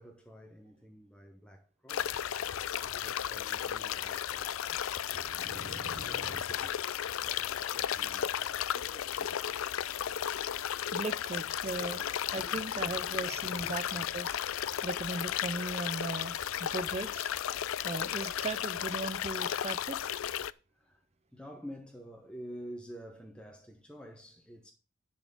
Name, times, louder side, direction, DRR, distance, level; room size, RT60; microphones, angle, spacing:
voice 1, 0.0-9.4 11.8-11.9 12.4-12.6 13.6-13.7 14.8-14.9 20.7-21.0 21.3-24.7, equal, 5° left, 0.9 m, -50 dB
sound 1, 1.9-20.5, left 10 dB, 85° left, 0.4 m, -34 dB
voice 2, 5.1-6.4 10.9-14.4 14.8-16.3 16.6-17.3 17.8-20.0, right 3 dB, 30° right, 0.5 m, -38 dB
10.5 x 4.2 x 6.8 m
head